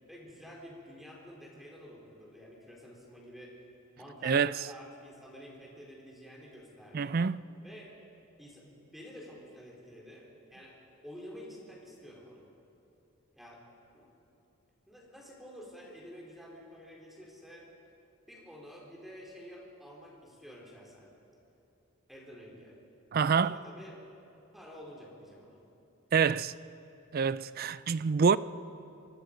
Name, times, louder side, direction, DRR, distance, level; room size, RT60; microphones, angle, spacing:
voice 1, 0.1-3.6 4.0-7.2 7.6-7.9 8.4-10.7 11.0-12.5 13.3-13.6 13.9-14.1 14.9-17.7 18.3-21.1 22.1-22.8 23.4-24.0 24.5-25.6, equal, ahead, 3.8 m, -49 dB
voice 2, 4.2-4.7 6.9-7.4 23.1-23.6 26.1-26.5 27.1-28.4, right 6 dB, 45° right, 0.4 m, -26 dB
25.5 x 21.5 x 5.2 m
head